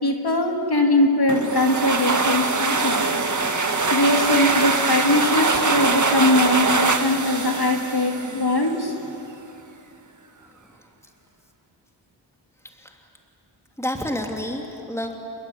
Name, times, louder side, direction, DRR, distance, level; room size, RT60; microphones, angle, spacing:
voice 1, 0.0-3.2 3.9-8.9, left 1 dB, 55° left, 3 dB, 2.7 m, -21 dB
sound 1, 1.3-8.8, right 3 dB, 40° right, 1.6 m, -23 dB
voice 2, 10.4-10.9 12.6-13.0 13.8-15.2, left 1 dB, 5° left, 2 dB, 2.8 m, -30 dB
28.0 x 21.0 x 8.7 m, 2.7 s
wide cardioid pair, 70°, 46 cm